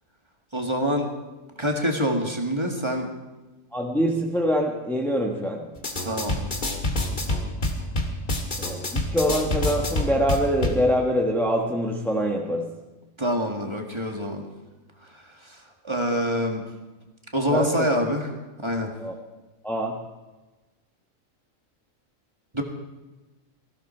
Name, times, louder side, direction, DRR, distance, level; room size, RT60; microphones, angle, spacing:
voice 1, 0.5-1.1 1.6-3.1 6.0-6.4 13.2-14.5 15.1-16.6 17.3-18.3 18.6-18.9 22.5-22.6, equal, 20° right, 2 dB, 1.9 m, -26 dB
voice 2, 3.7-5.7 8.6-12.7 17.5-17.9 19.0-19.1 19.6-20.0, equal, ahead, 0 dB, 1.2 m, -24 dB
sound 1, 5.8-10.8, left 1 dB, 40° left, 2.0 m, -27 dB
18.5 x 15.5 x 4.5 m, 1.2 s
omnidirectional pair, 1.4 m